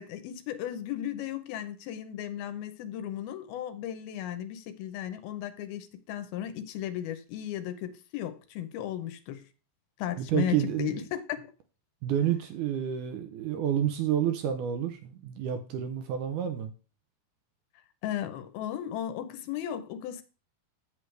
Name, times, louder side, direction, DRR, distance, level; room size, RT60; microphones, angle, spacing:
voice 1, 0.0-9.5 10.0-11.4 18.0-20.2, left 11 dB, 90° left, 2.7 m, -35 dB
voice 2, 10.2-11.0 12.0-16.7, right 10 dB, 75° right, 1.9 m, -29 dB
8.3 x 7.7 x 3.2 m
omnidirectional pair, 4.2 m